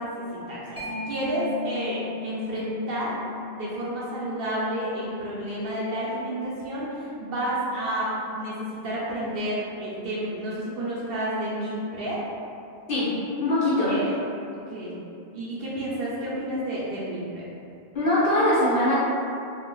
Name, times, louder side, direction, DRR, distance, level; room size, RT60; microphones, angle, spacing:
voice 1, 0.0-3.2 3.5-12.2 13.9-14.1 14.5-15.0 15.3-17.4, right 1 dB, 65° right, -7 dB, 0.7 m, -30 dB
Mallet percussion, 0.8-8.0, left 5 dB, 10° left, 0.4 m, -39 dB
voice 2, 13.4-13.9 17.9-18.9, left 1 dB, 55° left, -11 dB, 1.0 m, -21 dB
2.8 x 2.5 x 2.3 m, 2.5 s
omnidirectional pair, 1.1 m